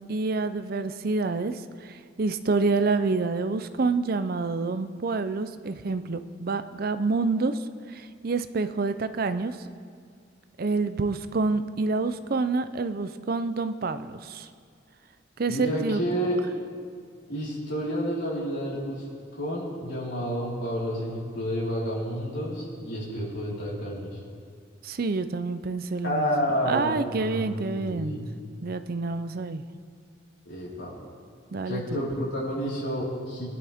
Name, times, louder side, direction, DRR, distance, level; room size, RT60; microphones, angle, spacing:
voice 1, 0.1-7.6 7.9-9.6 10.6-14.5 15.4-16.3 24.8-28.2 28.6-29.6 31.5-32.0, right 3 dB, 50° right, 11 dB, 0.5 m, -28 dB
voice 2, 15.5-16.4 17.3-19.0 19.4-24.2 26.0-28.3 30.4-30.9 31.7-33.5, equal, 75° left, -7 dB, 4.4 m, -30 dB
22.5 x 11.0 x 3.6 m, 2.1 s
head